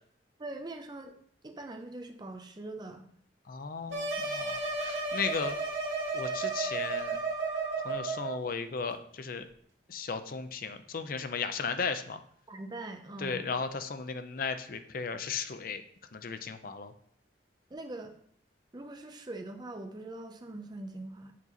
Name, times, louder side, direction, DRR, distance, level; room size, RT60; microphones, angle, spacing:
voice 1, 0.4-1.1 1.4-3.1 12.5-13.5 17.7-18.2 18.7-21.3, right 2 dB, 25° right, 4 dB, 0.6 m, -42 dB
voice 2, 3.5-5.6 6.1-7.2 7.8-9.5 9.9-12.2 13.2-15.8 16.1-16.9, left 5 dB, 50° left, 10 dB, 0.5 m, -35 dB
sound 1, 3.9-8.4, right 3 dB, 80° right, 1.6 m, -33 dB
7.4 x 4.1 x 4.0 m, 0.64 s
head